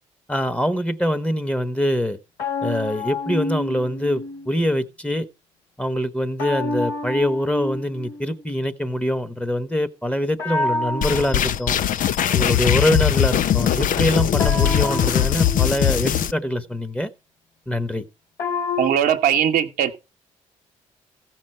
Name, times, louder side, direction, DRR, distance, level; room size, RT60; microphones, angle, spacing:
voice 1, 0.3-2.2 2.6-5.3 5.8-11.8 12.3-17.1 17.7-18.0, equal, 10° left, 1.2 m, -24 dB
sound 1, 2.4-4.6 6.4-8.4 10.4-12.4 14.4-16.3 18.4-18.9, left 2 dB, 80° left, 3.7 m, -29 dB
sound 2, 11.0-16.3, left 10 dB, 55° left, 0.6 m, -20 dB
voice 2, 18.8-20.0, right 9 dB, 65° right, 1.1 m, -19 dB
15.5 x 6.2 x 4.4 m
hypercardioid pair, 50°, 17 cm